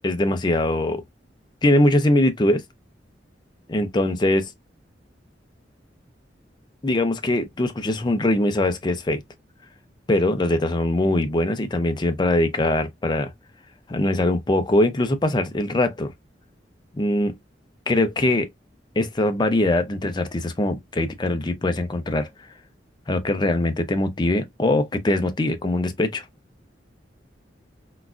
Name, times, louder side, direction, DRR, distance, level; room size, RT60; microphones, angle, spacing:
voice 1, 0.0-1.0 1.6-2.6 3.7-4.5 6.8-9.2 10.1-13.3 13.9-16.1 16.9-17.4 17.9-18.5 19.0-22.3 23.1-26.3, left 1 dB, 25° left, 0.5 m, -22 dB
3.9 x 2.4 x 2.3 m
head